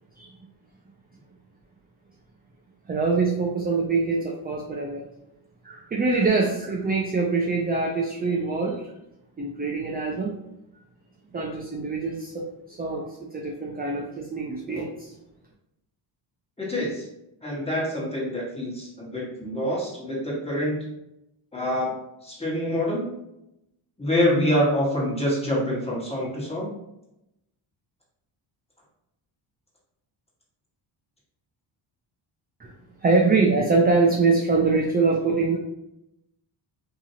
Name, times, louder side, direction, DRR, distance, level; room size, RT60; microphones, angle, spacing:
voice 1, 2.9-5.0 5.6-8.8 9.4-10.3 11.3-15.1 32.6-32.7 33.0-35.6, right 3 dB, 20° right, -1 dB, 0.4 m, -24 dB
voice 2, 16.6-17.1 17.4-20.8 21.5-21.9 22.2-23.1 24.0-26.7, equal, 10° left, -5 dB, 1.4 m, -26 dB
2.8 x 2.5 x 2.8 m, 0.86 s
cardioid pair, 70°, 49 cm